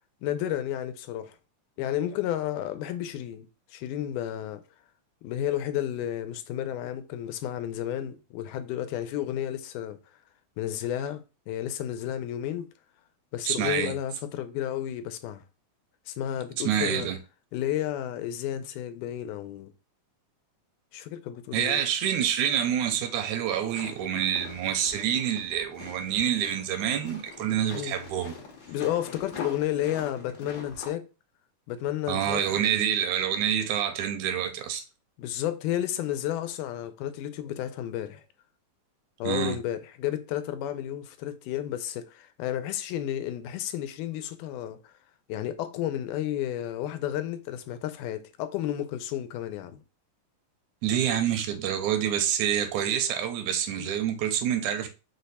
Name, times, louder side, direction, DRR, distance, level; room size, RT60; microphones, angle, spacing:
voice 1, 0.2-1.4 1.8-4.6 5.2-10.0 10.6-12.7 13.3-15.4 16.1-17.1 17.5-19.7 20.9-21.8 27.7-28.0 28.7-31.1 31.7-32.4 35.2-38.2 39.2-44.9 45.3-49.8 53.8-53.9, left 11 dB, 90° left, 2.1 m, -32 dB
voice 2, 13.4-13.9 16.6-17.2 21.5-28.4 32.1-34.8 39.2-39.6 50.8-54.9, right 9 dB, 80° right, 1.9 m, -27 dB
sound 1, 23.6-30.9, left 4 dB, 60° left, 1.2 m, -44 dB
5.1 x 2.2 x 4.0 m
omnidirectional pair, 3.5 m